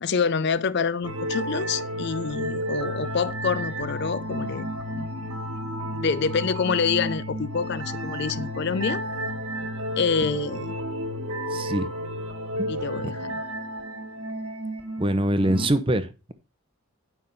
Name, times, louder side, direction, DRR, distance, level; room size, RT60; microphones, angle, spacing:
voice 1, 0.0-4.7 4.9-5.1 5.9-9.0 10.0-10.8 12.7-13.4, left 5 dB, 50° left, 0.4 m, -27 dB
sound 1, 1.0-15.7, equal, 80° right, 1.6 m, -32 dB
voice 2, 11.5-11.9 12.6-12.7 15.0-16.3, right 1 dB, 25° right, 0.7 m, -24 dB
9.8 x 5.7 x 5.3 m
head